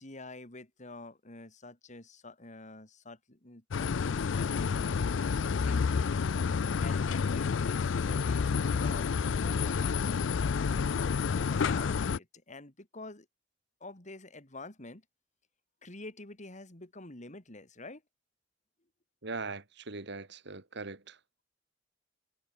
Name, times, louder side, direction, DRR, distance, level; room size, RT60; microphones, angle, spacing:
voice 1, 0.0-5.1 5.4-6.1 6.8-9.1 9.4-13.3 13.8-15.0 15.8-18.0, left 2 dB, 40° left, 3.4 m, -48 dB
sound 1, 3.7-12.2, left 5 dB, 80° left, 0.4 m, -29 dB
voice 2, 19.2-21.2, right 3 dB, 65° right, 2.0 m, -40 dB
head